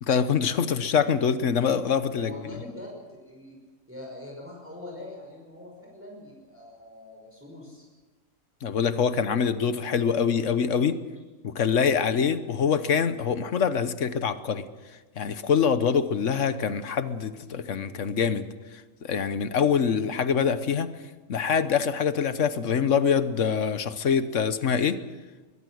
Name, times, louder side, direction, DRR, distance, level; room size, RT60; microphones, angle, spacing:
voice 1, 0.0-2.4 8.6-11.0 11.4-14.6 15.2-18.5 19.0-20.9 21.3-25.0, left 7 dB, 70° left, 12 dB, 1.3 m, -24 dB
voice 2, 2.2-3.6 3.9-7.9, left 1 dB, 10° right, -2 dB, 5.5 m, -43 dB
22.5 x 21.0 x 6.4 m, 1.3 s
omnidirectional pair, 1.3 m